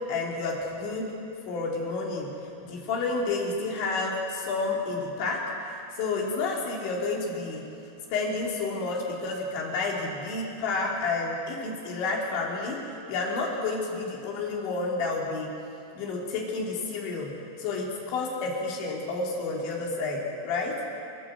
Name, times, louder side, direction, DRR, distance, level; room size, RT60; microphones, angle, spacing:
voice 1, 0.1-1.1 1.5-2.4 2.6-5.5 6.0-7.6 8.1-12.8 13.1-15.5 16.0-20.8, left 3 dB, 90° left, -2 dB, 5.2 m, -30 dB
27.0 x 14.5 x 7.8 m, 2.7 s
omnidirectional pair, 5.1 m